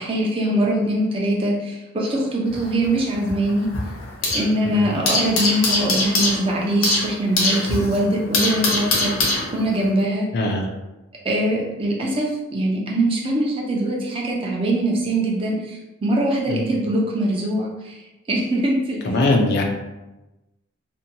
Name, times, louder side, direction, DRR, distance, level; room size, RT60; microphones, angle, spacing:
voice 1, 0.0-3.7 4.3-9.1 9.5-10.2 11.2-18.0 18.3-19.0, right 1 dB, 25° right, -2 dB, 0.5 m, -22 dB
sound 1, 2.5-4.6 4.8-9.9, left 2 dB, 80° left, 0.7 m, -23 dB
voice 2, 10.3-10.7 16.5-16.7 19.0-19.6, left 2 dB, 50° left, 2 dB, 0.4 m, -21 dB
2.6 x 2.2 x 2.7 m, 1.0 s
head